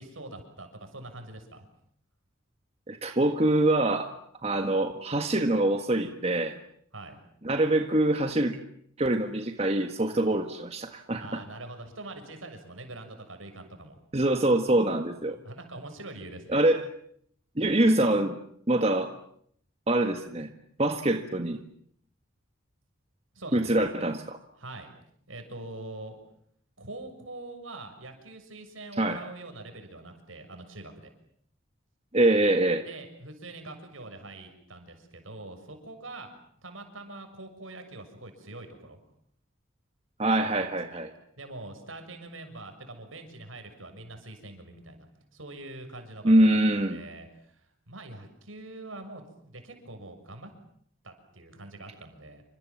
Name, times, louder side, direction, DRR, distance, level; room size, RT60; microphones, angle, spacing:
voice 1, 0.0-1.6 6.9-7.2 11.2-14.0 15.4-16.6 23.3-23.9 24.6-24.9 25.3-26.2 26.8-31.1 32.8-36.3 36.6-39.0 40.4-41.0 41.4-45.1 45.3-46.6 46.9-50.5 51.0-52.4, right 2 dB, 80° right, 6 dB, 6.8 m, -44 dB
voice 2, 2.9-4.1 4.4-6.6 7.4-8.6 9.0-11.4 14.1-15.4 16.5-16.9 17.6-18.4 18.7-19.1 19.9-20.5 20.8-21.6 23.5-24.4 29.0-29.2 32.1-32.8 40.2-41.1 46.2-47.0, right 1 dB, 30° right, 6 dB, 1.7 m, -24 dB
29.0 x 26.5 x 7.4 m, 0.67 s
head